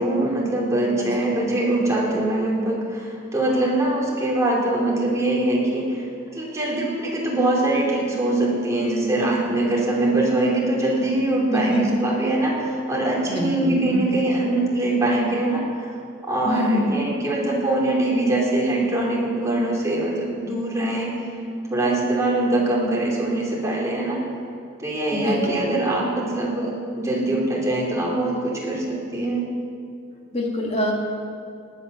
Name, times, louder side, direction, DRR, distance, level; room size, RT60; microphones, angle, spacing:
voice 1, 0.0-6.0 6.3-15.9 16.2-21.1 21.7-24.2 24.8-29.4, right 2 dB, 15° right, -4 dB, 2.9 m, -23 dB
voice 2, 11.5-12.0 13.3-14.1 16.4-16.9 25.1-26.0 30.3-30.9, left 1 dB, 30° left, 0 dB, 2.2 m, -25 dB
19.5 x 9.1 x 6.2 m, 2.4 s
head